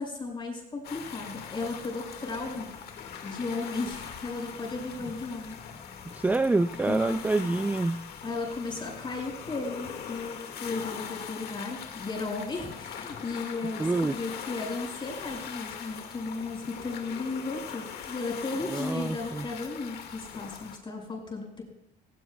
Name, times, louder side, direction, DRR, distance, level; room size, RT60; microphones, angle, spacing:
voice 1, 0.0-3.0 3.2-5.6 6.7-7.2 8.2-21.6, left 3 dB, 30° left, 1 dB, 5.7 m, -35 dB
sound 1, 0.8-20.8, left 7 dB, 65° left, 2.0 m, -41 dB
voice 2, 6.1-8.0 13.8-14.2 18.7-19.5, right 2 dB, 10° right, 10 dB, 0.4 m, -27 dB
18.5 x 18.5 x 2.3 m, 0.81 s
cardioid pair, 110°, 17 cm